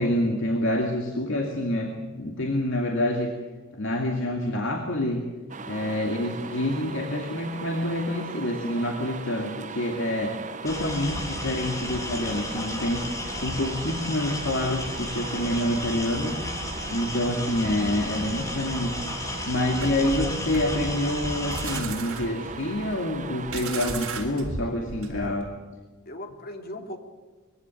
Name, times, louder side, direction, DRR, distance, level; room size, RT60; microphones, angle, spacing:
voice 1, 0.0-3.4 3.7-5.2 5.7-16.4 16.9-19.1 19.5-25.4, left 1 dB, 65° left, 2 dB, 2.3 m, -27 dB
sound 1, 5.5-23.7, right 4 dB, 35° right, 1.1 m, -39 dB
sound 2, 10.7-21.8, left 2 dB, 15° left, 3.2 m, -34 dB
sound 3, 19.8-25.5, right 3 dB, 80° right, 3.9 m, -35 dB
voice 2, 25.1-25.4 26.0-27.0, left 1 dB, 45° left, 4 dB, 2.7 m, -39 dB
22.0 x 16.0 x 9.1 m, 1.4 s
head